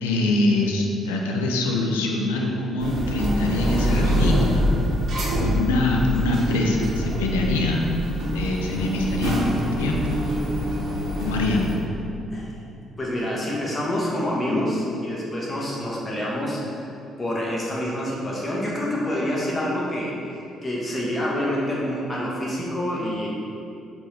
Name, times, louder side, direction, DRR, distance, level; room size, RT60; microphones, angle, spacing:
voice 1, 0.0-4.6 5.4-8.0 8.3-10.3 11.2-11.7, left 2 dB, 75° left, 0 dB, 0.4 m, -24 dB
sound 1, 2.8-11.8, equal, 50° right, 0.7 m, -25 dB
voice 2, 13.0-16.9 17.2-23.3, left 1 dB, 25° left, -5 dB, 0.9 m, -27 dB
5.3 x 2.5 x 3.2 m, 2.7 s
figure-of-eight pair, 45°, 0 cm